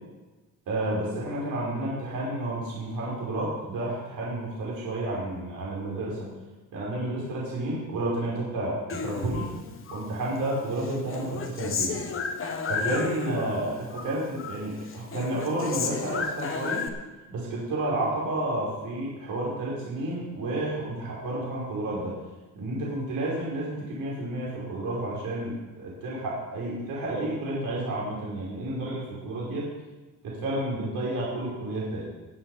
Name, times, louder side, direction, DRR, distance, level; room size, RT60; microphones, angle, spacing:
voice 1, 0.7-6.3 6.7-9.5 9.9-12.0 12.7-16.8 17.3-22.1 22.5-29.7 30.2-32.0, right 1 dB, 75° right, -5 dB, 5.0 m, -31 dB
Human voice, 8.9-10.1 10.4-13.6 13.9-14.6 14.9-16.9, left 5 dB, 40° left, 1.4 m, -32 dB
18.0 x 7.7 x 5.5 m, 1.2 s
cardioid pair, 135°, 34 cm